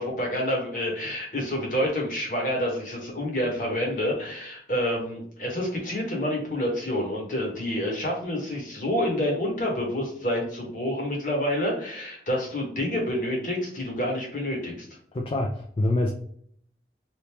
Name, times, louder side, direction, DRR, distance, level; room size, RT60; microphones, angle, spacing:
voice 1, 0.0-14.9, left 1 dB, 45° left, -1 dB, 1.3 m, -28 dB
voice 2, 15.1-16.1, left 1 dB, 30° left, 1 dB, 0.3 m, -25 dB
2.9 x 2.7 x 3.4 m, 0.63 s
head